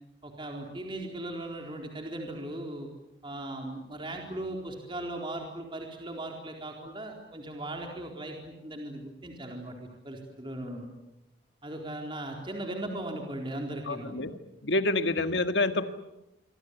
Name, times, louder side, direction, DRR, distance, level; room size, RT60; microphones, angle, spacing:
voice 1, 0.2-2.9 3.2-10.9 11.6-14.2, right 1 dB, 25° right, 2 dB, 4.1 m, -38 dB
voice 2, 13.9-14.3 14.6-15.9, left 2 dB, 70° left, 9 dB, 1.9 m, -27 dB
26.0 x 25.5 x 8.3 m, 0.88 s
head